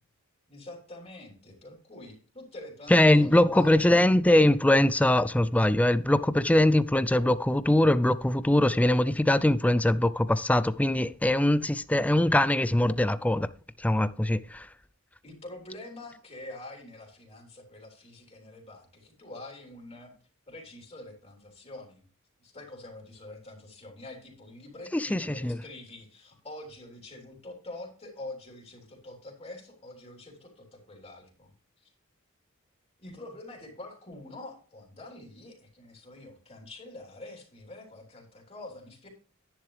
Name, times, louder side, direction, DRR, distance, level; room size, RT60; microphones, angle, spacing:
voice 1, 0.5-4.0 15.2-20.1 20.5-22.0 22.4-31.5 31.8-31.9 33.0-39.1, left 2 dB, 30° left, 3.4 m, -45 dB
voice 2, 2.9-13.5 13.8-14.7 24.9-25.6, left 1 dB, 5° left, 0.4 m, -22 dB
10.5 x 10.5 x 3.3 m
head